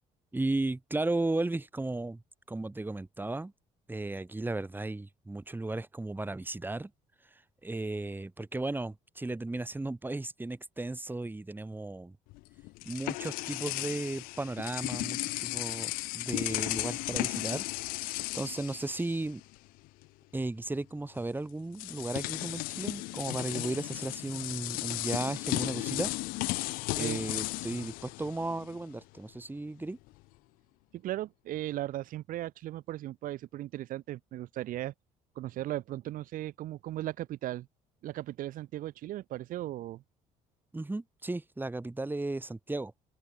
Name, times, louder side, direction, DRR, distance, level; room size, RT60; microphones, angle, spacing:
voice 1, 0.3-2.2 2.5-3.5 3.9-6.9 7.6-12.2 12.8-17.6 17.9-19.4 20.3-26.1 27.0-30.0 40.7-42.9, right 2 dB, 15° right, 5.3 m, -35 dB
sound 1, 12.3-19.6 19.8-20.1 21.2-21.3 21.7-28.9, left 22 dB, 90° left, 2.0 m, -35 dB
voice 2, 30.9-34.9 35.3-37.7 38.0-40.0, right 14 dB, 75° right, 4.8 m, -37 dB
open air
cardioid pair, 90°, 14 cm